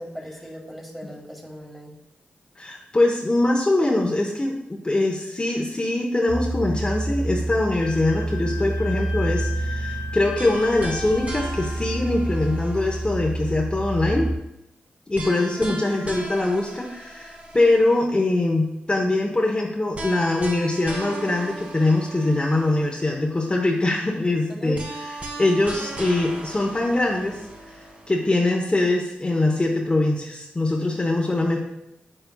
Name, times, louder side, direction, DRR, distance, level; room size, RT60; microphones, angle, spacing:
voice 1, 0.0-1.9 15.4-15.7 24.5-24.8, equal, 5° right, 0 dB, 1.7 m, -37 dB
voice 2, 2.6-14.3 15.1-24.8 25.4-27.4 28.1-31.6, left 2 dB, 25° left, 0 dB, 1.0 m, -23 dB
sound 1, 6.3-14.4, right 1 dB, 80° right, 1.0 m, -28 dB
Wind instrument woodwind instrument, 7.8-11.8, left 5 dB, 80° left, 0.8 m, -37 dB
sound 2, 10.4-13.5 15.1-18.1 19.9-23.1 24.7-28.2, right 1 dB, 35° right, 1.7 m, -37 dB
7.4 x 6.9 x 2.3 m, 0.85 s
cardioid pair, 50°, 4 cm